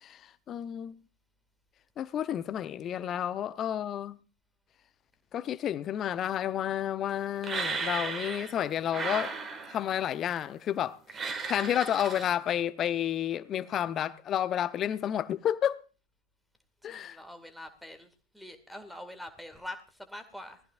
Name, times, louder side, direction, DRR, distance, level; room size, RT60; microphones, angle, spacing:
voice 1, 0.0-1.0 2.0-4.2 5.3-9.3 9.7-15.9 16.8-17.2, left 10 dB, 30° left, 0.8 m, -31 dB
sound 1, 7.4-8.6 8.9-9.9 11.1-12.3, right 5 dB, 20° right, 2.2 m, -35 dB
voice 2, 16.8-18.1 18.3-20.6, left 1 dB, ahead, 2.2 m, -44 dB
20.5 x 14.5 x 2.6 m
figure-of-eight pair, 90°, 0 cm